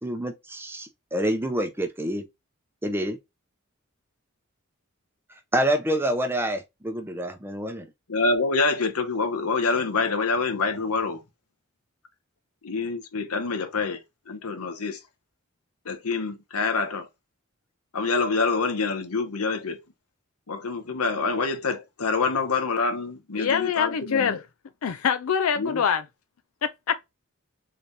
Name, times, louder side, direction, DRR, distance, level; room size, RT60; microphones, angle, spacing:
voice 1, 0.0-2.2 2.8-3.2 5.5-7.9, right 1 dB, 10° right, 0.6 m, -27 dB
voice 2, 8.1-11.2 12.6-14.0 14.3-15.0 15.9-17.1 17.9-19.8 20.5-24.4 25.6-25.8, left 4 dB, 90° left, 0.9 m, -26 dB
voice 3, 23.3-24.5 24.8-26.1 26.6-27.1, left 7 dB, 75° left, 0.4 m, -25 dB
3.8 x 3.4 x 2.6 m
head